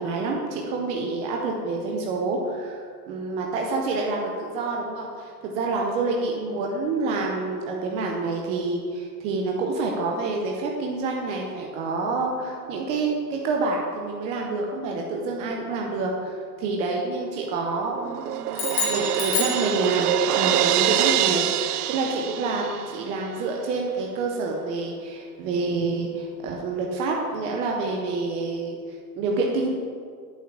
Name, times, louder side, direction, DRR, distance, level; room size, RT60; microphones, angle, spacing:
voice 1, 0.0-28.8 29.2-29.7, right 3 dB, 15° right, 0 dB, 0.4 m, -27 dB
Crash cymbal, 17.4-23.1, right 12 dB, 70° right, 0.5 m, -25 dB
sound 1, 18.5-20.3, left 5 dB, 55° left, 2.7 m, -28 dB
8.8 x 5.5 x 7.0 m, 2.1 s
hypercardioid pair, 120°, 48 cm